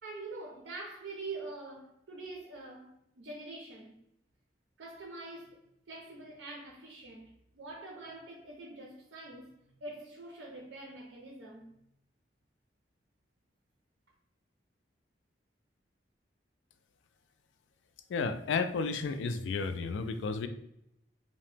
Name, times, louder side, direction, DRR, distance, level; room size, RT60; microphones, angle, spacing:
voice 1, 0.0-4.0 4.8-11.7, right 2 dB, 75° right, 0.5 m, -45 dB
voice 2, 18.1-20.5, left 4 dB, 85° left, 0.3 m, -32 dB
2.8 x 2.1 x 3.2 m
head